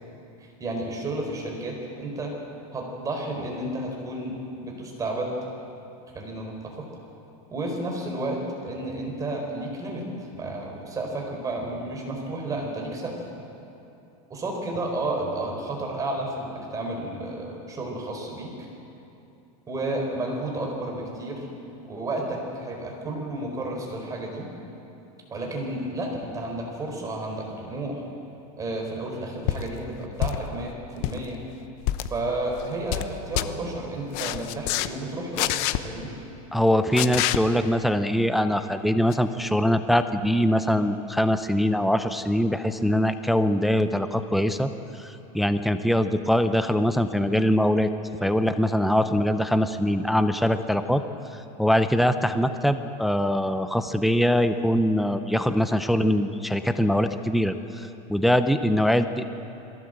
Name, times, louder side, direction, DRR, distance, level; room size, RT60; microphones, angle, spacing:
voice 1, 0.6-2.3 2.7-5.3 6.1-6.9 7.5-10.0 10.3-13.1 14.3-18.7 19.7-21.4 21.9-24.5 25.3-28.0 28.6-31.4 32.0-36.1, right 2 dB, 20° right, 1 dB, 4.4 m, -32 dB
sound 1, 29.5-29.7 30.2-30.6 30.9-31.2 31.8-32.1 32.6-33.1 33.4-33.5 34.1-34.9 35.4-35.8 37.0-37.4 39.1-39.2, left 15 dB, 50° left, 0.8 m, -26 dB
voice 2, 36.5-44.7 45.0-47.9 48.2-51.0 51.6-59.2, equal, ahead, 9 dB, 0.6 m, -23 dB
22.0 x 16.5 x 7.9 m, 2.8 s
supercardioid pair, 150°, 18 cm